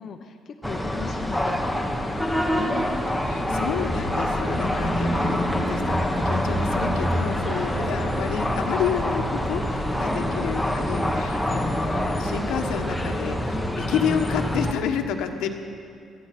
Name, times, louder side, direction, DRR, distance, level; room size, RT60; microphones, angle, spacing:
voice 1, 0.0-3.0 10.2-10.5, left 5 dB, 35° left, 4 dB, 0.7 m, -39 dB
sound 1, 0.6-14.7, equal, ahead, 0.9 m, -25 dB
voice 2, 3.3-15.5, left 8 dB, 85° left, 4 dB, 1.3 m, -30 dB
18.5 x 13.0 x 6.0 m, 2.5 s
cardioid pair, 180°, 0 cm